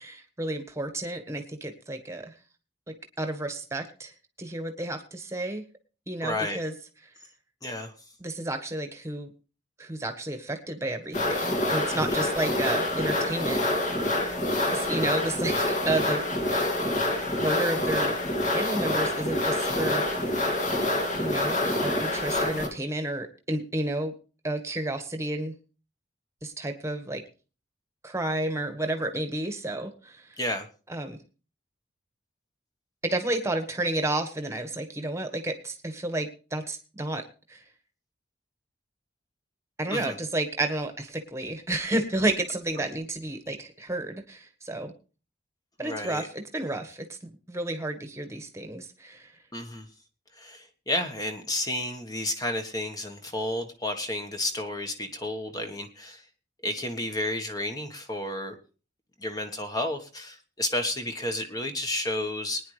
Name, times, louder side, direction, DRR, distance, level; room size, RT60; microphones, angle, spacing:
voice 1, 0.0-2.3 2.9-4.1 4.4-5.6 6.1-6.7 8.2-9.3 9.8-13.6 14.7-16.2 17.4-18.2 18.5-20.3 21.2-24.1 24.4-25.5 26.4-27.2 28.0-30.4 30.9-31.2 33.0-37.2 37.5-37.6 39.8-44.9 45.8-49.3, right 1 dB, 15° right, 6 dB, 1.4 m, -31 dB
voice 2, 6.2-6.6 7.6-7.9 11.9-12.2 19.7-19.9 30.4-30.7 39.9-40.2 45.8-46.3 49.5-49.9 50.3-56.2 56.6-58.6 59.2-62.6, left 1 dB, 20° left, 5 dB, 1.4 m, -31 dB
sound 1, 11.1-22.7, left 1 dB, 40° left, 2.2 m, -27 dB
21.5 x 10.0 x 3.3 m, 0.36 s
head